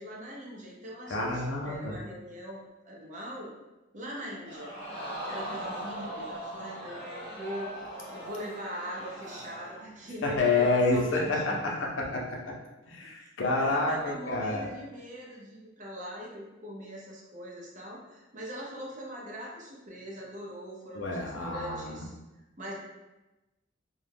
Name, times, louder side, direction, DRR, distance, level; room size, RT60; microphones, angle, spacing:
voice 1, 0.0-3.5 3.9-4.7 5.3-11.8 13.2-13.3 13.6-22.1 22.6-22.7, equal, 40° right, -3 dB, 0.6 m, -41 dB
voice 2, 1.1-1.9 10.2-12.5 12.9-14.7 20.9-22.0, left 3 dB, 80° left, -1 dB, 0.6 m, -28 dB
Crowd, 4.5-9.9 10.3-10.4, right 1 dB, 30° left, 0.8 m, -40 dB
2.3 x 2.1 x 3.3 m, 1.0 s
head